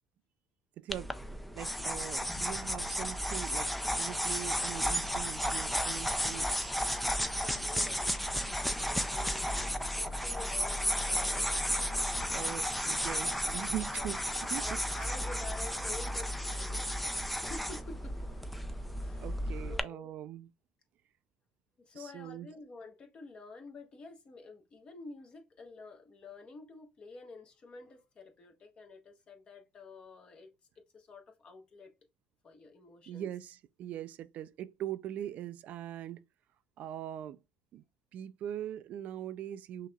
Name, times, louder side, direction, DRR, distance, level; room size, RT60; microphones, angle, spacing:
voice 1, 0.8-1.1 1.6-6.7 12.3-14.7 15.0-15.1 19.2-20.5 21.9-22.5 33.1-36.2 36.8-37.4 37.7-37.8 38.1-39.9, right 11 dB, 60° right, 0.4 m, -41 dB
sound 1, 0.9-19.8, equal, ahead, 0.4 m, -33 dB
sound 2, 1.7-19.5, left 2 dB, 75° left, 1.1 m, -46 dB
voice 2, 6.9-11.3 11.6-12.2 13.9-14.1 14.6-18.1 19.0-19.3 19.7-20.1 21.8-30.5 30.9-31.9 32.4-33.3, left 3 dB, 35° left, 1.2 m, -50 dB
5.7 x 2.9 x 2.3 m
cardioid pair, 105°, 3 cm